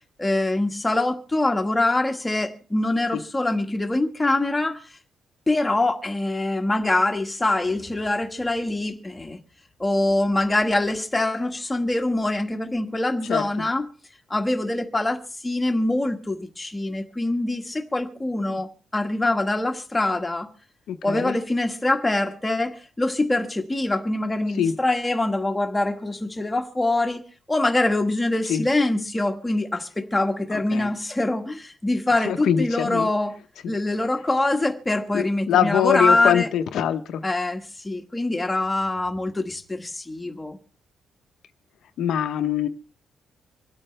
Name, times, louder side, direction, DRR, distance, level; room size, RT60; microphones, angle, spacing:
voice 1, 0.2-4.8 5.5-9.4 9.8-13.8 14.3-20.5 21.0-27.2 27.5-33.3 33.7-36.5 37.2-40.6, left 2 dB, 10° left, 1.5 m, -24 dB
voice 2, 13.3-13.7 18.5-18.6 20.9-21.4 24.6-24.7 28.5-28.6 30.5-30.9 32.2-33.1 35.1-37.2 42.0-42.7, left 9 dB, 70° left, 0.9 m, -23 dB
26.0 x 8.8 x 3.3 m
cardioid pair, 160°, 0 cm